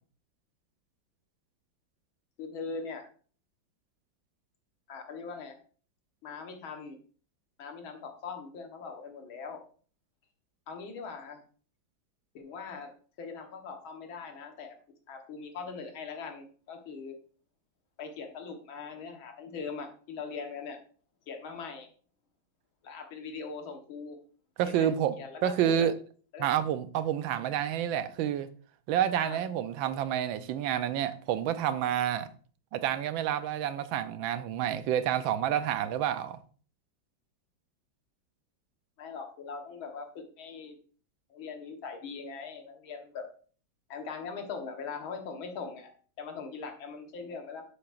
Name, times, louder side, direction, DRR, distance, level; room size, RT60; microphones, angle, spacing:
voice 1, 2.4-3.1 4.9-5.6 6.2-7.0 7.6-9.6 10.7-11.4 12.3-12.9 13.2-14.7 15.1-17.1 18.0-20.8 21.3-21.9 22.8-24.2 24.6-24.9 25.2-25.9 26.3-26.5 29.2-29.4 39.0-40.8 41.3-43.2 43.9-47.6, left 5 dB, 90° left, 2.1 m, -41 dB
voice 2, 24.6-25.1 25.4-25.9 26.4-28.5 28.9-32.3 32.7-36.4, right 10 dB, 80° right, 1.4 m, -29 dB
10.5 x 6.7 x 2.5 m
omnidirectional pair, 2.1 m